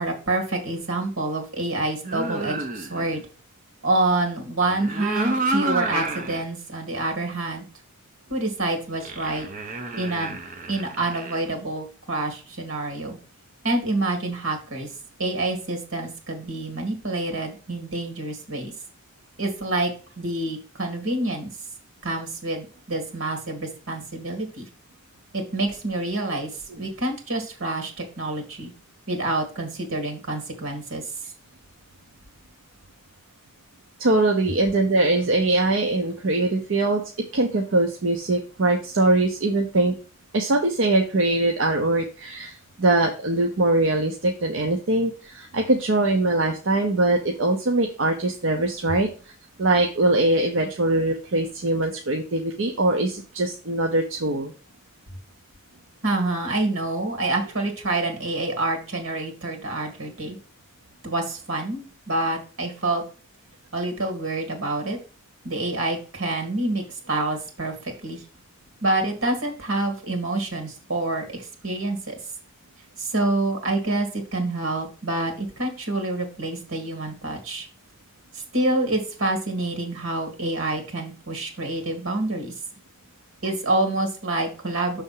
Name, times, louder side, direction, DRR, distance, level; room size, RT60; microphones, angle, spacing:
voice 1, 0.0-3.2 3.8-7.6 8.3-9.5 10.0-10.4 10.7-13.2 13.6-14.9 15.2-18.7 19.4-19.9 20.2-21.5 22.0-24.7 25.3-26.5 26.8-28.7 29.1-31.0 56.0-60.4 61.0-63.0 63.7-65.0 65.4-68.2 68.8-72.2 73.0-77.7 78.3-82.5 83.4-85.0, right 2 dB, 80° right, 4 dB, 1.9 m, -27 dB
sound 1, 2.0-3.2 4.6-6.5 7.0-7.1 9.0-11.5, right 2 dB, 40° right, 0.8 m, -29 dB
voice 2, 34.0-37.0 37.3-39.9 40.3-49.3 49.6-54.5, right 2 dB, 65° right, 2 dB, 0.7 m, -22 dB
6.5 x 3.5 x 5.5 m, 0.36 s
head